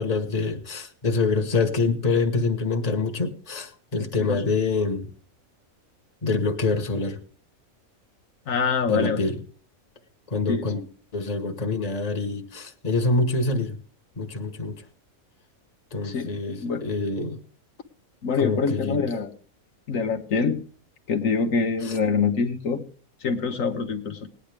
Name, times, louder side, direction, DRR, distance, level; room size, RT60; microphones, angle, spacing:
voice 1, 0.0-5.1 6.2-7.2 8.9-9.4 10.3-10.8 11.1-13.8 14.1-14.8 15.9-17.4 18.4-19.1 21.8-22.0, left 3 dB, 30° left, 5 dB, 1.4 m, -26 dB
voice 2, 8.5-9.2 10.5-10.6 16.0-16.9 18.2-19.3 19.9-20.6 21.1-22.8 23.2-24.3, left 5 dB, 70° left, 4 dB, 1.4 m, -25 dB
19.0 x 9.9 x 3.4 m, 0.42 s
omnidirectional pair, 1.4 m